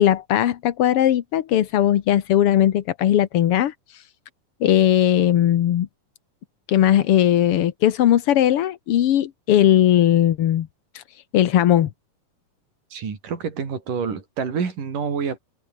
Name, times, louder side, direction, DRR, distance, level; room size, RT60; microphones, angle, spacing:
voice 1, 0.0-4.0 4.6-5.9 6.7-10.7 10.9-11.0 11.3-11.9, left 11 dB, 60° left, 1.6 m, -18 dB
voice 2, 12.9-15.4, right 6 dB, 75° right, 5.6 m, -27 dB
omnidirectional pair, 3.7 m